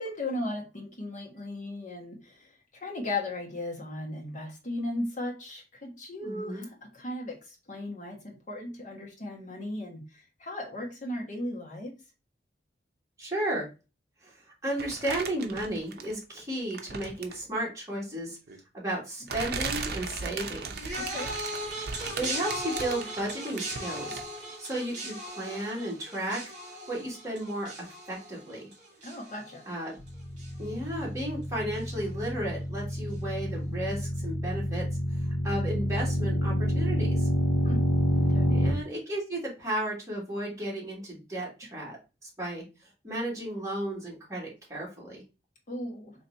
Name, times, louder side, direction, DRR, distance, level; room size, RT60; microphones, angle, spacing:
voice 1, 0.0-12.0 21.0-21.3 29.0-29.7 37.6-37.8 38.1-38.6 45.7-46.1, left 1 dB, 45° left, 1.3 m, -36 dB
voice 2, 6.2-6.7 13.2-13.7 14.2-14.3 14.6-18.4 18.7-20.7 22.2-24.2 24.6-26.4 26.9-27.7 28.1-28.7 29.7-30.0 30.6-34.9 35.4-37.3 38.5-42.0 42.2-42.6 43.0-45.2, right 1 dB, 20° right, 1.8 m, -34 dB
sound 1, 14.8-16.3 16.7-17.5 18.5-18.6 19.3-24.4 24.7-24.8, right 5 dB, 60° right, 0.6 m, -37 dB
sound 2, 20.7-30.1 30.4-30.9 31.8-31.9, right 1 dB, 45° right, 1.7 m, -38 dB
sound 3, 30.0-38.7, equal, 85° left, 0.8 m, -28 dB
4.2 x 3.1 x 2.6 m
head